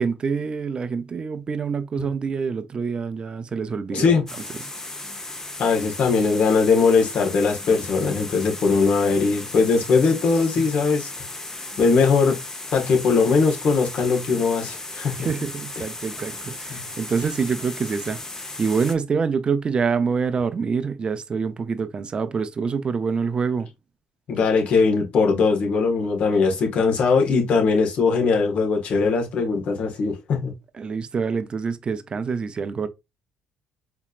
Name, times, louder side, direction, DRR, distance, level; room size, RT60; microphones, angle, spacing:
voice 1, 0.0-4.2 15.2-18.2 18.6-23.7 30.7-32.9, right 5 dB, 40° right, 0.6 m, -26 dB
voice 2, 3.9-4.2 5.6-11.1 11.8-12.4 12.7-15.3 16.7-16.8 24.3-30.5, left 4 dB, 60° left, 1.4 m, -20 dB
sound 1, 4.3-19.0, left 2 dB, 20° left, 0.9 m, -36 dB
4.3 x 3.0 x 2.4 m
supercardioid pair, 65°, 2 cm